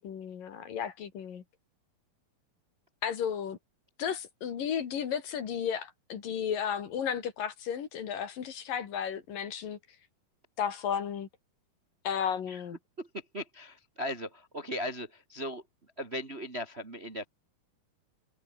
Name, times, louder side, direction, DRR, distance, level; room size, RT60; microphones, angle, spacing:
voice 1, 0.0-1.4 3.0-3.6 4.0-9.8 10.6-11.3 12.0-12.8, left 8 dB, 65° left, 4.0 m, -33 dB
voice 2, 13.0-17.3, equal, 25° right, 1.7 m, -38 dB
omnidirectional pair, 4.3 m